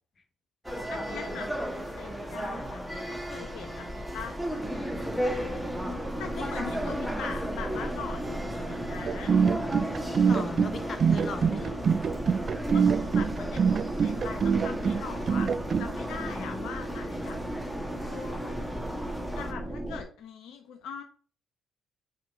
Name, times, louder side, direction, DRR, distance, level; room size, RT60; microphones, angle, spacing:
sound 1, 0.6-19.5, equal, 5° right, 1.3 m, -36 dB
voice 1, 0.9-4.4 4.7-5.3 6.2-9.3 10.8-10.9 12.7-15.5 15.8-17.4 18.1-18.9 19.3-21.0, left 7 dB, 75° left, 5 dB, 0.5 m, -42 dB
sound 2, 4.6-20.0, right 1 dB, 20° right, 1.3 m, -36 dB
voice 2, 6.3-7.3 10.3-11.8 16.1-16.7, left 4 dB, 50° left, 8 dB, 0.9 m, -39 dB
sound 3, 9.1-15.9, right 6 dB, 50° right, 0.4 m, -25 dB
5.8 x 3.0 x 5.5 m, 0.42 s
supercardioid pair, 55°, 0 cm